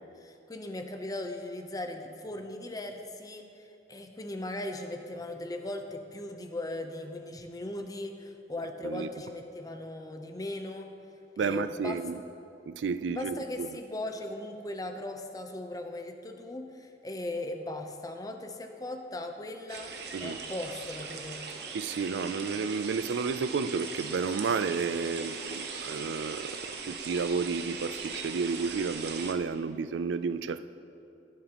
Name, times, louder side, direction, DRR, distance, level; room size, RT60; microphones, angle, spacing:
voice 1, 0.0-10.9 11.4-12.0 13.1-21.4, left 1 dB, 20° left, 5 dB, 0.7 m, -38 dB
voice 2, 11.4-12.2 12.7-13.7 20.1-20.4 21.7-26.5 26.9-30.7, right 5 dB, 90° right, 13 dB, 0.4 m, -31 dB
sound 1, 19.7-29.3, right 5 dB, 65° right, 0.9 m, -39 dB
19.0 x 7.5 x 2.9 m, 2.6 s
head